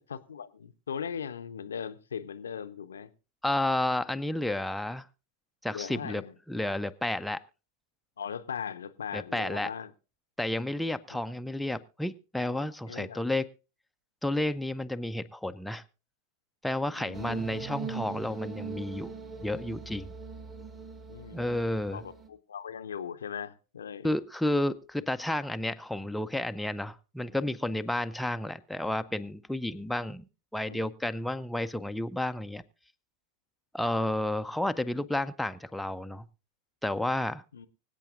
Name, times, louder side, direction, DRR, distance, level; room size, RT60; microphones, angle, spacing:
voice 1, 0.1-3.1 5.7-6.3 8.2-9.9 12.5-13.2 17.0-17.4 20.6-20.7 21.1-24.1 30.7-30.9 37.5-37.7, left 7 dB, 70° left, 11 dB, 0.6 m, -39 dB
voice 2, 3.4-5.1 5.6-6.2 6.5-7.4 9.1-9.7 10.4-13.5 14.2-15.8 16.6-19.1 19.4-20.1 21.3-22.0 24.0-30.3 30.5-32.6 33.7-36.2 36.8-37.4, left 1 dB, ahead, 8 dB, 0.5 m, -31 dB
sound 1, 17.1-22.3, right 5 dB, 20° right, 1.3 m, -40 dB
25.0 x 8.3 x 2.5 m, 0.32 s
figure-of-eight pair, 90°, 0 cm